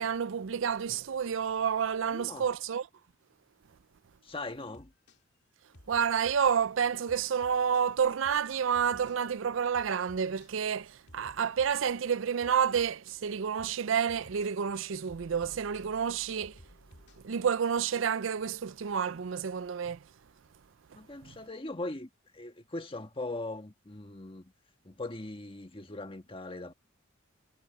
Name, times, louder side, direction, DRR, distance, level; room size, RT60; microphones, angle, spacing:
voice 1, 0.0-2.9 5.9-16.6 17.2-20.0, right 7 dB, 65° right, 0.5 m, -29 dB
voice 2, 2.1-2.4 4.2-4.9 20.9-24.5 24.8-26.7, left 2 dB, 25° left, 1.5 m, -40 dB
sound 1, 4.7-5.2 5.7-6.5 7.1-7.9 8.2-8.5 8.7-9.2 9.7-10.5 11.1-11.9 12.4-13.2 13.6-13.8 14.1-14.5 15.1-17.3, left 1 dB, 55° left, 2.5 m, -56 dB
head